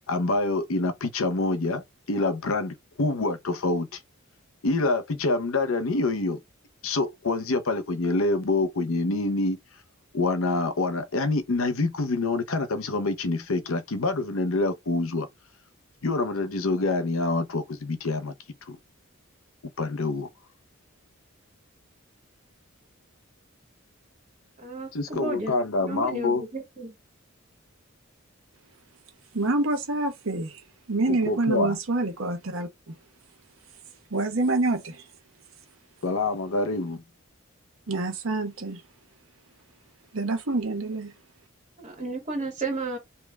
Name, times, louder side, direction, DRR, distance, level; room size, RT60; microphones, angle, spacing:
voice 1, 0.1-4.0 4.6-6.4 6.8-9.6 10.1-15.3 16.0-18.3 18.7-18.8 19.8-20.3 24.9-26.4 31.1-31.8 36.0-37.0, left 3 dB, 75° left, 0.7 m, -26 dB
voice 2, 24.6-25.5 25.8-26.9 41.8-43.0, right 2 dB, 35° right, 2.1 m, -32 dB
voice 3, 29.3-33.0 34.1-35.1 37.9-38.8 40.1-41.1, right 2 dB, 70° right, 1.0 m, -27 dB
3.3 x 2.9 x 3.5 m
head